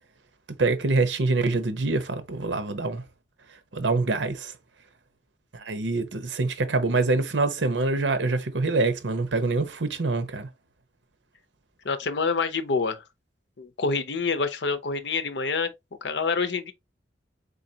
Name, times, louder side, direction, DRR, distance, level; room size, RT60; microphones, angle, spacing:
voice 1, 0.6-3.0 3.7-4.5 5.5-10.5, right 3 dB, 90° right, 0.8 m, -25 dB
voice 2, 11.8-13.0 13.6-15.7 16.0-16.7, left 4 dB, 75° left, 0.7 m, -27 dB
4.0 x 3.9 x 2.7 m
head